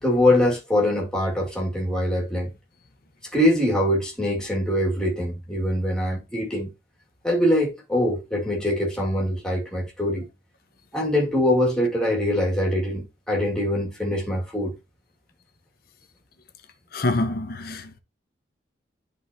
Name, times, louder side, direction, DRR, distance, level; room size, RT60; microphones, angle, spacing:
voice 1, 0.0-2.5 3.3-6.7 7.2-10.3 10.9-14.7, left 1 dB, 5° left, 1.9 m, -23 dB
voice 2, 16.9-18.0, left 2 dB, 50° left, 0.8 m, -26 dB
11.0 x 3.9 x 2.7 m
head